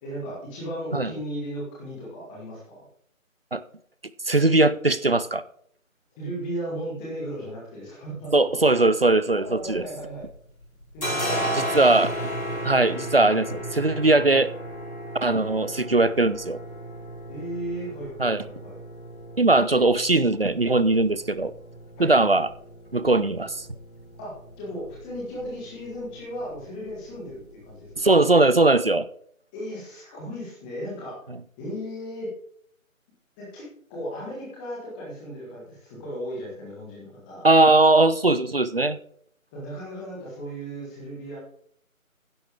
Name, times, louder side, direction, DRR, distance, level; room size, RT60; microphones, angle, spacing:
voice 1, 0.0-2.8 6.2-8.3 9.3-10.2 10.9-12.0 12.5-12.6 17.3-18.7 22.0-22.1 24.2-27.9 29.5-31.1 31.6-32.3 33.4-37.4 39.5-41.4, equal, 5° left, -5 dB, 1.7 m, -36 dB
voice 2, 4.3-5.4 8.3-9.8 11.5-12.1 12.6-14.5 15.2-16.6 18.2-18.4 19.4-21.5 22.0-22.5 22.9-23.7 28.0-29.1 37.4-39.0, right 2 dB, 45° right, 15 dB, 0.5 m, -20 dB
sound 1, 9.4-10.4 10.6-28.1, equal, 80° left, 4.8 m, -35 dB
12.0 x 10.5 x 3.5 m, 0.63 s
figure-of-eight pair, 155°, 41 cm